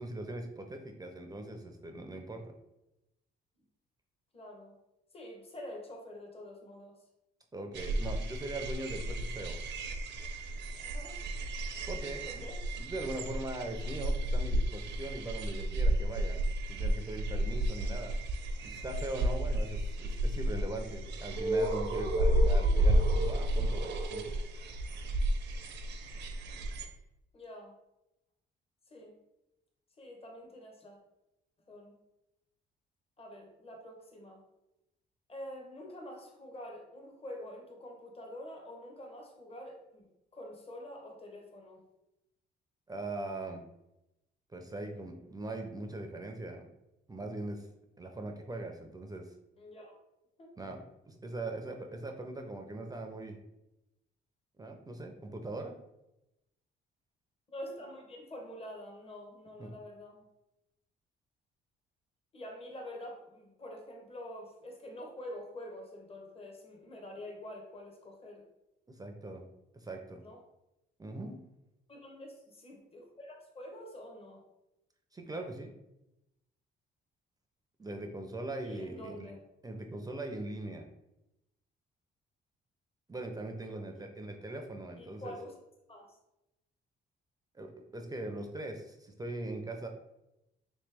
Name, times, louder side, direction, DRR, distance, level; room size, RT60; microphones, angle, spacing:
voice 1, 0.0-2.5 7.5-9.6 11.9-12.4 12.8-16.4 16.7-18.2 18.6-24.3 42.9-43.6 44.5-46.7 47.1-47.7 48.0-49.3 50.6-53.4 54.6-55.7 59.6-59.7 69.0-69.4 69.7-70.2 71.0-71.4 75.1-75.7 77.8-79.3 79.6-80.9 83.1-85.4 87.5-89.9, right 2 dB, 20° right, 4 dB, 0.5 m, -41 dB
voice 2, 4.3-4.7 5.1-7.0 10.8-11.2 12.3-12.6 27.3-27.7 28.9-29.2 30.0-31.0 31.7-31.9 33.2-34.4 35.3-41.8 49.6-50.0 50.4-50.5 57.5-60.2 62.3-68.5 70.2-70.4 71.9-74.4 78.6-79.4 83.7-84.1 85.0-85.5 85.9-86.2, left 1 dB, 30° left, 1 dB, 1.0 m, -47 dB
sound 1, 7.7-26.8, right 1 dB, 65° right, 0.6 m, -32 dB
3.2 x 3.1 x 3.4 m, 0.90 s
cardioid pair, 90°, 20 cm